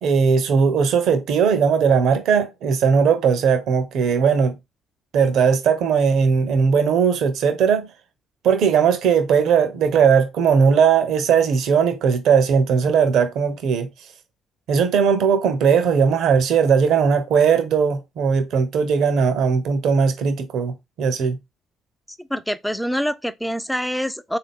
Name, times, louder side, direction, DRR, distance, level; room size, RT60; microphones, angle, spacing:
voice 1, 0.0-4.5 5.1-7.9 8.4-13.9 14.7-21.4, right 6 dB, 65° right, 0.8 m, -18 dB
voice 2, 22.3-24.4, equal, 5° left, 0.5 m, -25 dB
3.7 x 2.8 x 3.5 m
hypercardioid pair, 50°, 0 cm